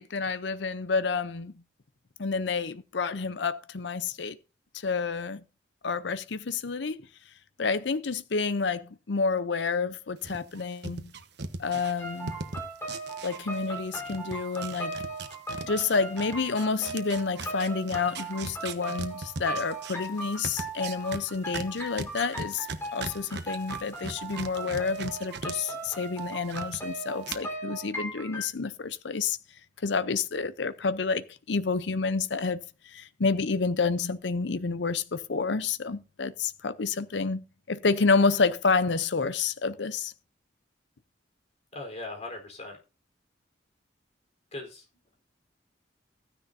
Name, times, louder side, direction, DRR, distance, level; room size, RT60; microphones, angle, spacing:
voice 1, 0.0-1.5 2.2-4.4 4.7-5.4 5.8-7.0 7.6-11.1 11.6-12.3 13.2-15.0 15.6-22.7 22.9-29.4 29.8-32.6 32.9-40.1, left 4 dB, 70° left, 0.7 m, -29 dB
sound 1, 10.2-13.8 14.1-25.5 25.9-26.8 27.2-27.4, right 4 dB, 65° right, 1.1 m, -38 dB
sound 2, 12.0-28.5, right 1 dB, 15° left, 4.1 m, -38 dB
voice 2, 41.7-42.8 44.5-44.8, left 2 dB, 40° left, 4.0 m, -39 dB
15.0 x 10.0 x 2.7 m
head